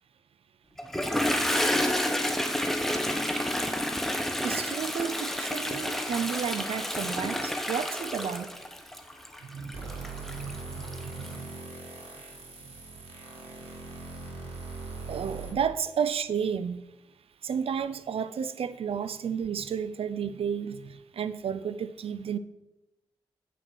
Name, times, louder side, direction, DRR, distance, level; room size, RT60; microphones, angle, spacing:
Toilet flush, 0.8-11.4, left 1 dB, 5° left, 1.1 m, -30 dB
voice 1, 4.4-8.5 9.5-9.7 10.3-11.4 15.1-16.8 17.4-22.4, right 7 dB, 70° right, 13 dB, 0.5 m, -32 dB
sound 1, 9.7-15.5, right 3 dB, 90° right, 2.1 m, -41 dB
8.4 x 5.9 x 6.2 m, 0.97 s
supercardioid pair, 45°, 10 cm